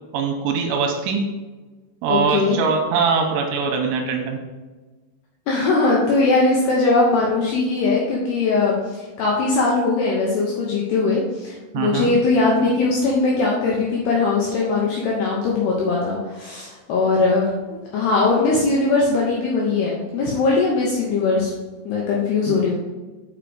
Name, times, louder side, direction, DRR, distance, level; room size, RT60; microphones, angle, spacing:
voice 1, 0.1-1.2 2.0-4.4 11.7-12.2 22.5-22.6, right 5 dB, 80° right, 3 dB, 3.0 m, -22 dB
voice 2, 2.1-2.6 5.5-17.5 17.9-21.5 21.8-22.7, left 3 dB, 75° left, -3 dB, 2.4 m, -20 dB
6.9 x 5.6 x 5.0 m, 1.3 s
omnidirectional pair, 6.0 m